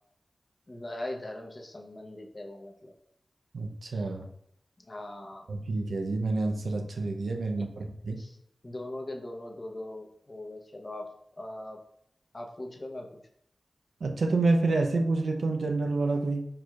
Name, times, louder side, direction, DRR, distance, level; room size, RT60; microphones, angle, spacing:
voice 1, 0.7-2.9 4.8-5.5 7.5-7.6 8.2-8.4 8.6-11.8 12.3-13.1, left 1 dB, 40° left, 1 dB, 0.9 m, -40 dB
voice 2, 3.5-4.3 5.5-8.2 14.0-16.5, right 3 dB, 80° right, 3 dB, 0.5 m, -28 dB
4.8 x 4.5 x 2.3 m, 0.72 s
cardioid pair, 40°, 0 cm